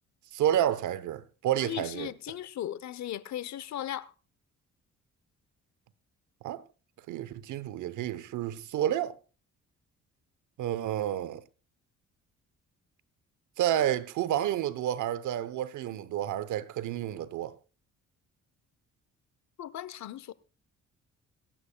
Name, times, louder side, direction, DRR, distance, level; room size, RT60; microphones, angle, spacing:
voice 1, 0.3-2.1 6.4-6.6 7.1-9.2 10.6-11.4 13.6-17.6, right 11 dB, 80° right, 0.9 m, -30 dB
voice 2, 1.6-4.1 19.6-20.3, left 12 dB, 65° left, 0.8 m, -37 dB
26.5 x 8.8 x 2.2 m
cardioid pair, 90°, 30 cm